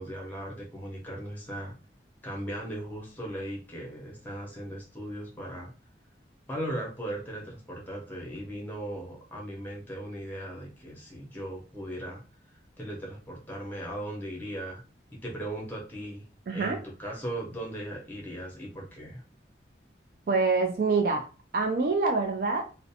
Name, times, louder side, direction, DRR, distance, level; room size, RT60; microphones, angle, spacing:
voice 1, 0.0-1.7 2.2-5.7 6.5-12.2 12.8-14.8 15.1-16.2 16.5-19.2, right 1 dB, 10° left, -2 dB, 0.7 m, -38 dB
voice 2, 16.5-16.8 20.3-21.3 21.5-22.6, right 4 dB, 50° right, 3 dB, 0.3 m, -25 dB
2.5 x 2.1 x 2.7 m, 0.35 s
head